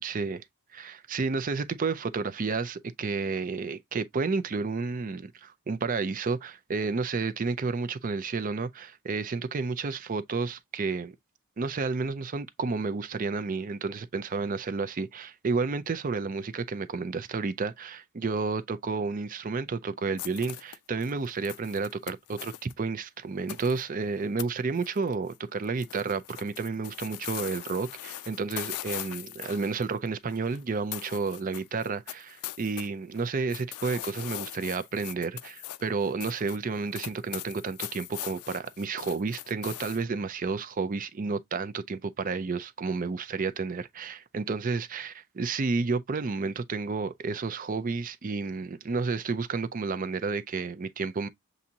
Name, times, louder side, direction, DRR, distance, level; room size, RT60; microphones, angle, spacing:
voice 1, 0.0-0.4 0.7-11.2 11.6-51.3, right 4 dB, 40° right, 0.4 m, -31 dB
sound 1, 20.2-22.7 23.5-23.8 24.4-24.5 24.8-25.4 25.6-30.6 30.9-32.9 33.1-40.0, left 13 dB, 85° left, 0.4 m, -40 dB
7.1 x 2.6 x 2.8 m
head